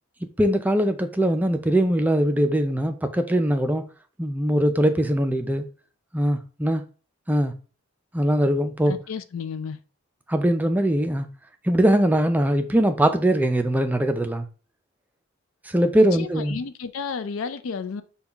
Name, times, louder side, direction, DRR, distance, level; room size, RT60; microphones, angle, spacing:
voice 1, 0.4-3.8 4.2-5.6 6.1-6.8 7.3-7.5 8.1-8.9 10.3-11.3 11.6-14.5 15.6-16.6, right 1 dB, 10° right, 0.3 m, -21 dB
voice 2, 8.9-9.8 15.9-18.0, left 5 dB, 70° left, 0.4 m, -32 dB
5.4 x 2.3 x 3.4 m
head